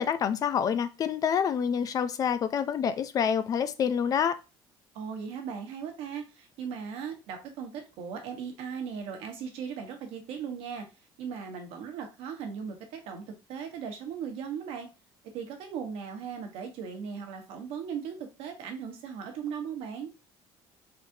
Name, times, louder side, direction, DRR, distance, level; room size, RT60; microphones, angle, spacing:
voice 1, 0.0-4.4, left 7 dB, 40° left, 0.4 m, -27 dB
voice 2, 4.9-10.9 11.2-14.9 15.3-20.1, right 7 dB, 75° right, 1.1 m, -38 dB
3.9 x 3.4 x 2.7 m
cardioid pair, 140°, 10 cm